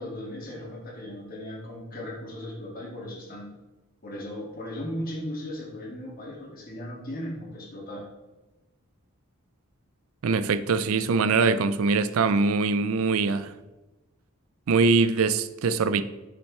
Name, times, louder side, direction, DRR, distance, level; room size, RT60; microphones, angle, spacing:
voice 1, 0.0-3.5 4.0-8.0, left 1 dB, 40° left, 2.2 m, -37 dB
voice 2, 10.2-13.5 14.7-16.0, right 4 dB, 70° right, 0.4 m, -23 dB
9.0 x 6.7 x 3.2 m
head